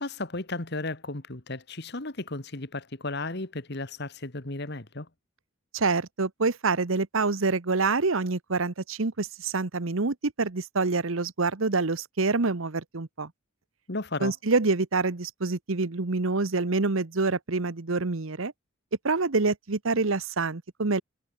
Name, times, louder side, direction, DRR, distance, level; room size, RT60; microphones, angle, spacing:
voice 1, 0.0-5.1 13.9-14.3, left 2 dB, 50° left, 1.9 m, -34 dB
voice 2, 5.7-13.3 14.2-18.5 19.0-21.0, right 3 dB, 70° right, 1.0 m, -26 dB
head